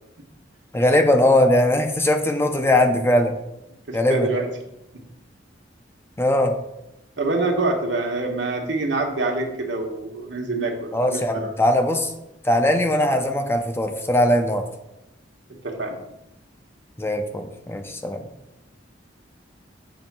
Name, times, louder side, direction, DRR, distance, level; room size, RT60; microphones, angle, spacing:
voice 1, 0.7-3.4 3.9-4.3 6.2-6.6 10.9-12.1 12.4-14.7 17.0-18.2, left 1 dB, 15° left, 5 dB, 0.5 m, -20 dB
voice 2, 3.9-4.5 7.2-11.5 15.5-16.0, right 2 dB, 75° right, 1 dB, 1.2 m, -26 dB
7.1 x 3.2 x 5.9 m, 0.89 s
head